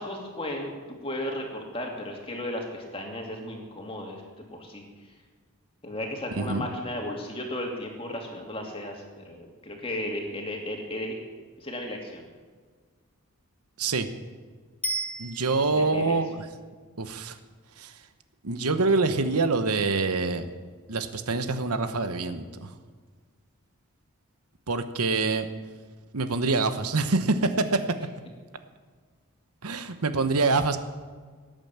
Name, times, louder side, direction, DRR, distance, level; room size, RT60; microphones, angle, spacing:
voice 1, 0.0-4.2 4.5-4.8 5.8-11.2 11.6-12.2 15.7-16.1, left 1 dB, 25° left, 1 dB, 2.5 m, -35 dB
voice 2, 6.4-6.7 13.8-14.1 15.2-16.5 17.0-17.4 17.8-17.9 18.4-20.5 20.9-22.7 24.7-25.5 26.1-27.8 29.6-30.8, right 3 dB, 90° right, 9 dB, 1.1 m, -25 dB
Bicycle bell, 14.8-16.0 25.0-25.1, right 2 dB, 5° left, 1.3 m, -33 dB
17.5 x 9.1 x 7.5 m, 1.5 s
head